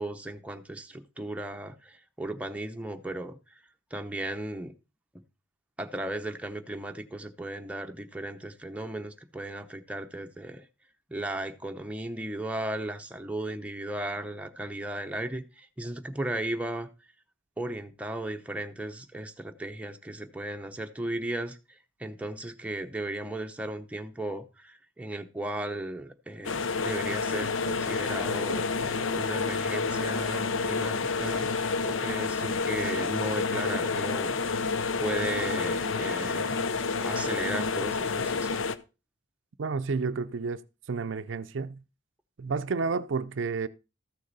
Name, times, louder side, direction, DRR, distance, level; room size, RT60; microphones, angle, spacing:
voice 1, 0.0-3.6 3.9-4.7 5.8-10.7 11.1-16.9 17.6-34.3 35.0-36.6 37.0-38.6, right 1 dB, 5° right, 0.8 m, -36 dB
sound 1, 26.4-38.8, left 4 dB, 85° left, 0.7 m, -29 dB
voice 2, 39.6-40.6 40.9-41.8 42.4-43.7, right 4 dB, 70° right, 0.5 m, -30 dB
13.5 x 6.5 x 4.0 m
head